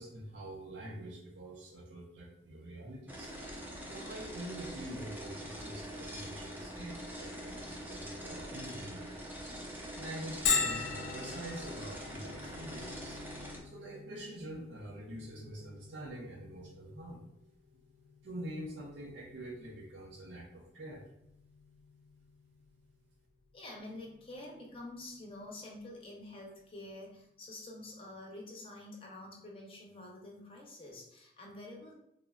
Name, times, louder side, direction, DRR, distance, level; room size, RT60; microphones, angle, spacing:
voice 1, 0.0-3.3 3.9-9.2 9.9-13.2 13.6-17.2 18.2-21.1, right 1 dB, 90° right, -1 dB, 0.5 m, -45 dB
sound 1, 3.1-13.6, equal, 10° right, 0.4 m, -44 dB
Bell, 10.5-25.9, left 5 dB, 75° left, 0.4 m, -42 dB
voice 2, 23.5-31.9, left 2 dB, 30° left, -1 dB, 0.6 m, -48 dB
3.6 x 2.0 x 2.3 m, 0.81 s
head